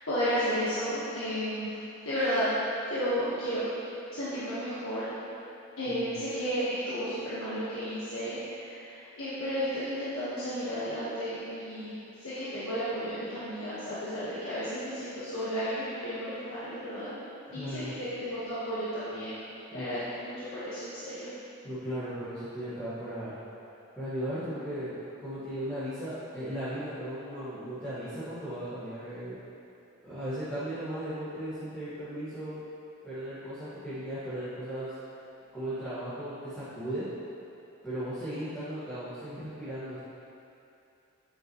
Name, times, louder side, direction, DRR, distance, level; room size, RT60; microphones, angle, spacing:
voice 1, 0.1-1.8 2.0-2.5 2.9-3.6 4.1-5.1 5.8-17.1 17.5-19.4 19.7-21.3, equal, 75° left, -12 dB, 1.4 m, -33 dB
voice 2, 17.5-17.9 19.7-19.9 21.6-23.3 24.0-29.3 30.0-32.6 33.0-34.9 35.5-37.1 37.8-40.0, equal, 10° left, -16 dB, 1.8 m, -36 dB
9.1 x 6.4 x 3.1 m, 2.7 s
head